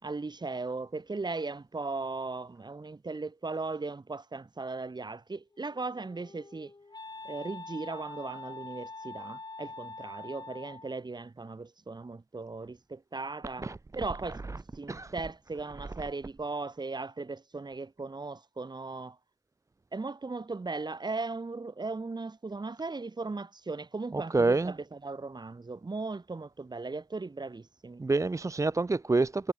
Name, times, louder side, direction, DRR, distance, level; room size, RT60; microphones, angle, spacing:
voice 1, 0.0-6.7 7.2-14.4 14.7-19.2 19.9-28.0, right 3 dB, 60° right, 2.4 m, -37 dB
Wind instrument woodwind instrument, 5.5-11.0, left 3 dB, 55° left, 2.0 m, -45 dB
voice 2, 24.1-24.7 28.0-29.5, right 3 dB, 40° right, 0.5 m, -27 dB
cardioid pair, 45°, 8 cm